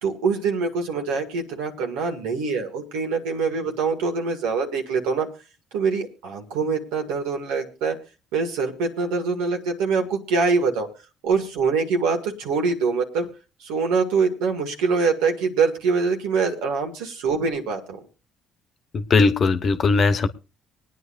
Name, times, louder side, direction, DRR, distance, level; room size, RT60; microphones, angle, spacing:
voice 1, 0.0-5.3 5.7-8.0 8.3-10.9 11.2-13.3 13.6-18.0, right 4 dB, 80° right, 2.0 m, -24 dB
voice 2, 18.9-20.3, left 4 dB, 50° left, 1.1 m, -19 dB
24.5 x 9.5 x 2.6 m
supercardioid pair, 70°, 0 cm